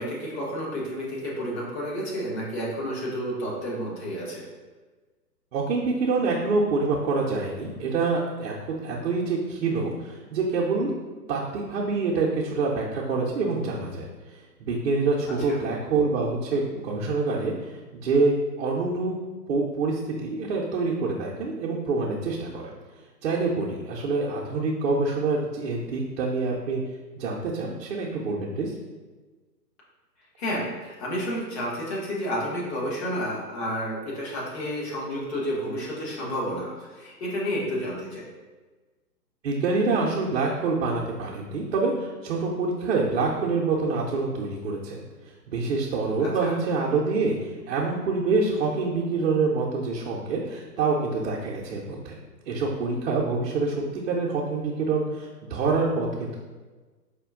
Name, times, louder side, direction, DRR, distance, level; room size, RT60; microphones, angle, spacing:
voice 1, 0.0-4.5 15.4-15.5 30.4-38.3 46.2-46.6, equal, 40° left, -4 dB, 1.4 m, -31 dB
voice 2, 5.5-10.9 11.3-14.1 14.6-17.7 18.0-19.2 19.5-22.7 23.2-26.8 27.2-28.7 39.4-45.0 45.5-52.2 52.5-56.4, right 3 dB, 45° right, -4 dB, 0.7 m, -26 dB
5.0 x 2.3 x 3.6 m, 1.3 s
figure-of-eight pair, 125°, 49 cm